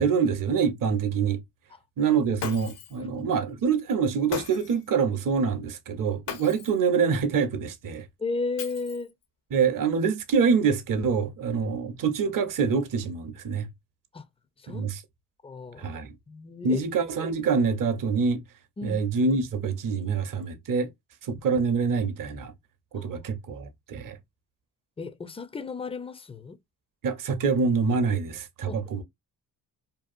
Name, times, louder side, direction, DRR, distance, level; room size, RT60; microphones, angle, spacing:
voice 1, 0.0-1.4 2.0-8.0 9.5-13.7 14.7-15.0 15.8-16.1 16.6-18.4 18.8-20.9 21.3-22.5 22.9-24.2 27.0-29.0, right 5 dB, 50° right, 0.7 m, -25 dB
Shatter, 2.4-3.0 4.3-4.9 6.3-6.8 8.6-9.2, left 7 dB, 75° left, 0.8 m, -37 dB
voice 2, 8.2-9.1 14.1-14.2 14.6-14.8 15.4-15.8 16.3-16.8 18.8-19.0 23.0-23.1 25.0-26.6 28.7-28.8, left 3 dB, 15° left, 0.4 m, -33 dB
2.7 x 2.3 x 2.4 m
supercardioid pair, 50°, 42 cm